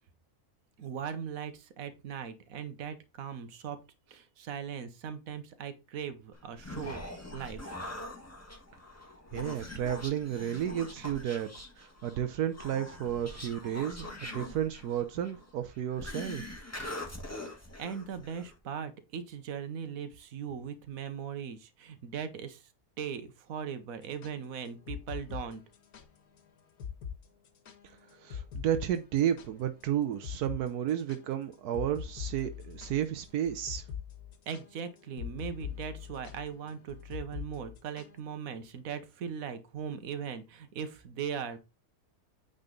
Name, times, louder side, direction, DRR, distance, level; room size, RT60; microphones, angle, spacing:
voice 1, 0.8-3.8 4.1-7.8 11.0-11.1 17.5-22.6 23.0-25.6 34.5-41.6, right 7 dB, 65° right, 1.4 m, -39 dB
Human voice, 6.3-18.6, left 2 dB, 10° left, 1.4 m, -43 dB
voice 2, 9.3-11.5 11.8-16.4 28.2-33.8, right 10 dB, 85° right, 1.2 m, -32 dB
sound 1, 24.0-26.1 26.4-26.5 26.8-27.2 27.4-29.8 30.2-30.6 30.9-38.2, left 8 dB, 80° left, 1.5 m, -42 dB
9.0 x 4.0 x 3.8 m
omnidirectional pair, 1.6 m